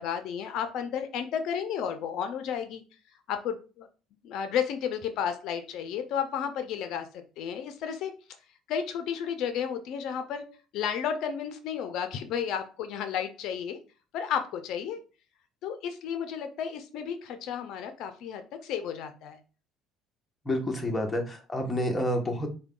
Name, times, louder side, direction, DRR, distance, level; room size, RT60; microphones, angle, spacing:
voice 1, 0.0-2.8 3.3-3.9 4.2-7.1 7.4-8.1 8.7-10.4 10.7-13.8 14.1-15.0 15.6-19.4, left 8 dB, 65° left, 8 dB, 0.5 m, -32 dB
voice 2, 20.4-22.5, left 1 dB, 10° left, 1 dB, 0.9 m, -29 dB
4.5 x 2.2 x 3.7 m, 0.35 s
cardioid pair, 125°, 0 cm